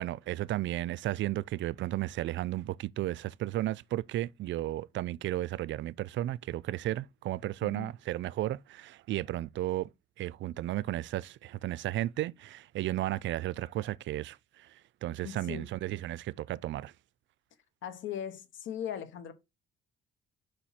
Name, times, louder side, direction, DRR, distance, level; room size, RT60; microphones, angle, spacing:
voice 1, 0.0-9.9 10.2-16.9, right 15 dB, 70° right, 0.4 m, -34 dB
voice 2, 15.2-15.7 17.8-19.3, left 9 dB, 75° left, 1.1 m, -39 dB
5.2 x 4.2 x 5.7 m
cardioid pair, 90°, 20 cm